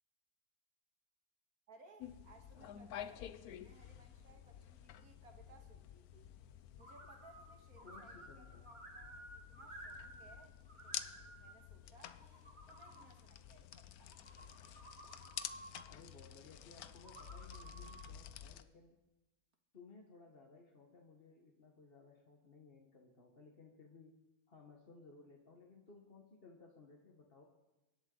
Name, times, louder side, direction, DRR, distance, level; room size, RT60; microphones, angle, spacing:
voice 1, 1.7-3.3 3.6-6.3 6.8-14.2, right 3 dB, 85° right, 3 dB, 2.3 m, -64 dB
sound 1, 2.0-18.6, left 10 dB, 85° left, 1.2 m, -51 dB
sound 2, 6.8-7.5 7.8-10.4 10.7-11.5 12.1-13.1 14.0-15.8 16.9-18.1, right 1 dB, 30° right, 2.1 m, -54 dB
voice 2, 7.8-8.7 15.9-19.0 19.7-24.2 24.5-27.4, left 4 dB, 40° left, 0 dB, 1.6 m, -60 dB
24.5 x 11.0 x 4.0 m, 1.1 s
omnidirectional pair, 1.5 m